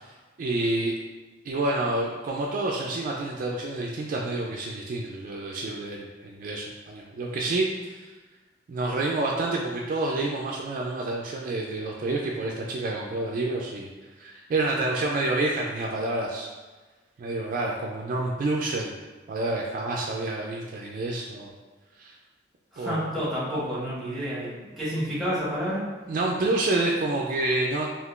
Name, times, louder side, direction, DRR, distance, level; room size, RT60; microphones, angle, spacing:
voice 1, 0.4-0.9 1.4-8.1 8.7-13.9 14.2-16.5 17.2-18.9 19.3-21.5 22.0-22.1 22.8-23.1 26.1-27.9, right 2 dB, 50° right, -1 dB, 0.3 m, -28 dB
voice 2, 22.7-25.8, equal, ahead, -9 dB, 1.1 m, -29 dB
3.6 x 2.4 x 2.4 m, 1.3 s
head